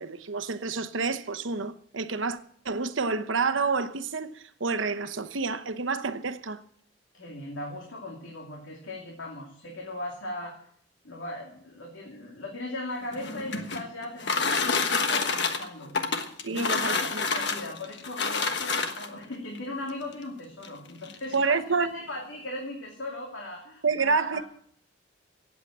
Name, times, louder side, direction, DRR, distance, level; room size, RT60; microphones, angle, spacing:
voice 1, 0.0-2.4 2.6-6.6 16.4-17.3 17.5-17.6 21.3-21.9 23.8-24.4, right 4 dB, 85° right, 1.0 m, -28 dB
voice 2, 7.1-10.5 11.0-15.9 16.5-24.4, left 1 dB, 85° left, 2.8 m, -38 dB
sound 1, 13.0-19.2 20.1-20.2 20.6-20.7 21.0-21.4, left 4 dB, 60° left, 1.4 m, -28 dB
16.5 x 8.3 x 7.3 m
head